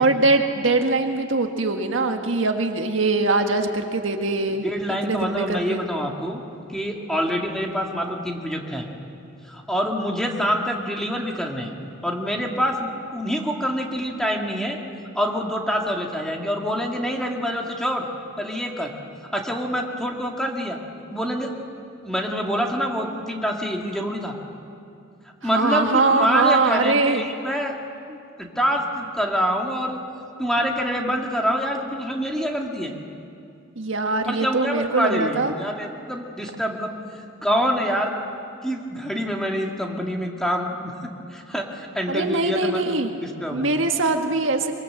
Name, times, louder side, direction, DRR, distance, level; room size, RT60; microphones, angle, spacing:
voice 1, 0.0-4.7 5.0-5.8 25.4-27.3 33.7-35.5 42.1-43.1 43.5-44.7, right 3 dB, 70° right, 4 dB, 1.7 m, -22 dB
voice 2, 4.6-6.4 6.7-8.9 9.5-11.7 12.0-14.8 15.1-18.1 18.4-18.9 19.3-20.8 21.1-21.5 22.0-24.3 25.4-27.8 28.4-30.0 30.4-32.9 34.3-36.9 37.4-38.1 38.6-40.9 41.3-43.7, equal, 5° left, 0 dB, 2.2 m, -26 dB
24.5 x 23.5 x 7.6 m, 2.5 s
head